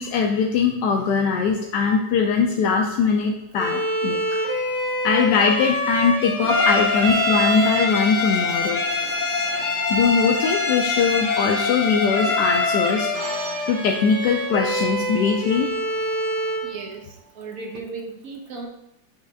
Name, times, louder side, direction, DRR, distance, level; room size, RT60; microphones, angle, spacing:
voice 1, 0.0-4.2 5.0-9.1 9.9-13.1 13.7-15.7, left 5 dB, 80° left, 1 dB, 1.3 m, -21 dB
Bowed string instrument, 3.6-16.7, equal, 5° left, 1.3 m, -26 dB
Bowed string instrument 2, 6.4-13.2, left 5 dB, 30° left, 1.1 m, -25 dB
sound 1, 13.1-17.8, right 4 dB, 85° right, 1.5 m, -40 dB
voice 2, 16.6-18.7, right 3 dB, 60° right, 2 dB, 1.3 m, -36 dB
6.9 x 3.2 x 4.7 m, 0.83 s
omnidirectional pair, 1.8 m